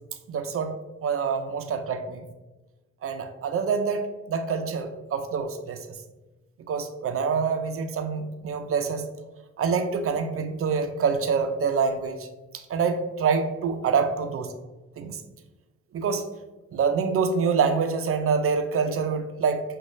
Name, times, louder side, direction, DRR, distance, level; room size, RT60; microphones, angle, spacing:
voice 1, 0.3-2.2 3.0-5.8 6.7-9.1 9.6-12.3 12.5-14.5 15.0-15.2 15.9-16.3 16.7-19.6, right 5 dB, 50° right, 7 dB, 0.5 m, -26 dB
6.1 x 2.4 x 3.1 m, 1.1 s
cardioid pair, 90°, 30 cm